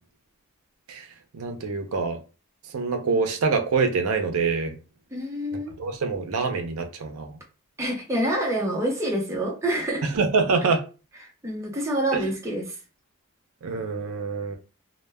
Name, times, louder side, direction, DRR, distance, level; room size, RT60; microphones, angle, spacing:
voice 1, 1.3-2.2 2.7-4.8 5.5-7.3 10.0-10.8 12.1-12.3 13.6-14.6, right 4 dB, 85° right, 0.5 m, -25 dB
voice 2, 5.1-5.7 7.8-10.0 11.4-12.7, right 1 dB, 15° right, 0.5 m, -27 dB
2.1 x 2.1 x 3.3 m
head